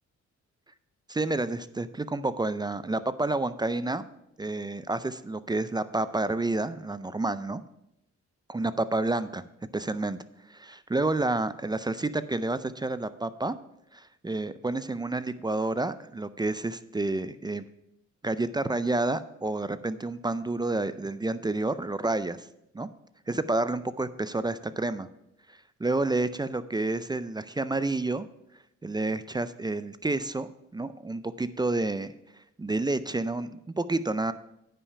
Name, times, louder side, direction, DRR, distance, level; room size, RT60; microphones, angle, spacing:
voice 1, 1.1-4.1 4.4-7.6 8.5-9.4 9.7-10.2 10.5-13.5 13.9-17.6 18.2-22.5 22.7-22.9 23.3-25.1 25.8-28.3 28.8-32.1 32.6-34.3, right 2 dB, 15° right, 13 dB, 0.4 m, -29 dB
9.7 x 5.7 x 5.5 m, 0.82 s
cardioid pair, 80°, 29 cm